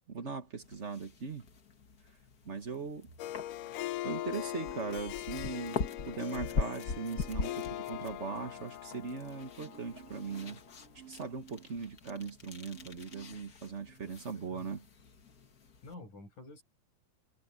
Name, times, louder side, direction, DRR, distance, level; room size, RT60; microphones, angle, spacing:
voice 1, 0.1-1.4 2.4-3.1 4.0-5.8 6.0-10.6 10.9-14.8, right 5 dB, 65° right, 0.7 m, -39 dB
sound 1, 0.6-15.9, left 4 dB, 40° left, 1.4 m, -43 dB
Harp, 3.2-10.7, left 15 dB, 85° left, 2.3 m, -41 dB
Marimba xylophone, 4.3-5.0 5.3-6.8 7.1-7.8 8.2-12.4 12.7-13.5 13.8-14.0, right 11 dB, 50° right, 4.1 m, -56 dB
voice 2, 14.3-14.8 15.8-16.6, left 2 dB, 70° left, 9.3 m, -50 dB
omnidirectional pair, 3.7 m